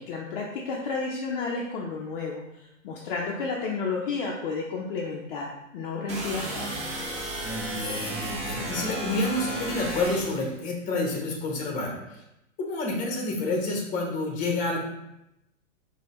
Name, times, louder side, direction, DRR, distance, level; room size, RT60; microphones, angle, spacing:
voice 1, 0.0-6.7, left 4 dB, 45° left, -2 dB, 0.5 m, -32 dB
sound 1, 6.1-10.5, right 1 dB, 15° right, 0.6 m, -33 dB
voice 2, 7.4-12.2 12.6-14.8, left 2 dB, 20° left, 0 dB, 0.9 m, -29 dB
5.2 x 2.2 x 2.9 m, 0.87 s
hypercardioid pair, 130°, 39 cm